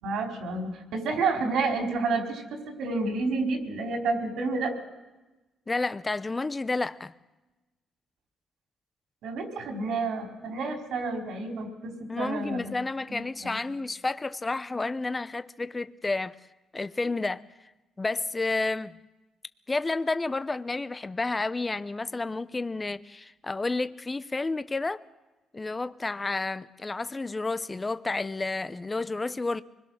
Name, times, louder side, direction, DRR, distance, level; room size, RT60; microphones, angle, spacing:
voice 1, 0.0-4.7 9.2-12.7 13.1-13.6, right 3 dB, 80° right, 4.4 m, -30 dB
voice 2, 5.7-7.1 12.1-16.4 16.7-17.4 18.0-19.0 19.7-25.0 25.5-29.6, left 3 dB, 20° left, 0.7 m, -30 dB
24.5 x 21.0 x 6.4 m
cardioid pair, 90°, 0 cm